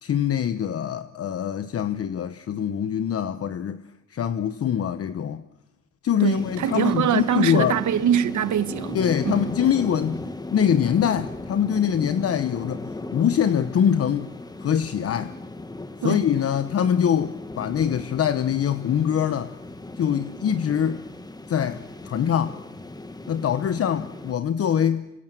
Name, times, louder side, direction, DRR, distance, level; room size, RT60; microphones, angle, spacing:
voice 1, 0.0-3.8 4.1-5.4 6.0-7.8 8.9-14.3 14.6-15.3 16.0-19.5 20.0-21.0 21.5-22.6 23.3-25.1, left 8 dB, 45° left, 1.0 m, -24 dB
voice 2, 6.2-9.5 16.0-16.2, right 9 dB, 60° right, 1.5 m, -24 dB
sound 1, 6.3-24.3, left 2 dB, 10° left, 1.6 m, -37 dB
27.5 x 26.0 x 7.7 m
cardioid pair, 125°, 33 cm